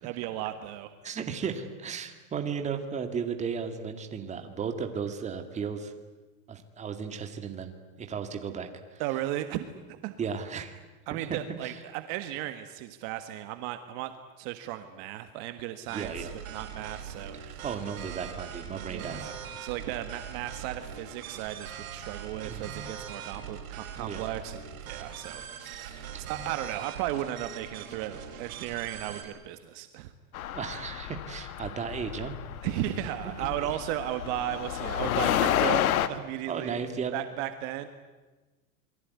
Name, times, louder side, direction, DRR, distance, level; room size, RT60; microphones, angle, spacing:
voice 1, 0.0-0.9 9.0-10.2 11.1-14.1 14.4-17.6 18.9-19.3 19.6-30.1 32.6-36.8 37.1-37.9, right 13 dB, 45° right, 9 dB, 1.6 m, -35 dB
voice 2, 1.0-5.9 6.5-7.7 8.0-9.0 10.2-10.7 11.2-11.8 15.9-16.3 17.3-19.3 19.9-20.0 22.4-22.7 23.4-23.5 24.0-24.3 30.5-32.4 33.2-33.8 36.5-37.1, right 6 dB, 15° right, 6 dB, 2.3 m, -35 dB
sound 1, 15.9-29.2, right 8 dB, 75° right, 6.1 m, -41 dB
sound 2, 30.3-36.1, left 11 dB, 90° left, 1.9 m, -30 dB
28.0 x 22.0 x 9.6 m, 1.2 s
supercardioid pair, 155°, 41 cm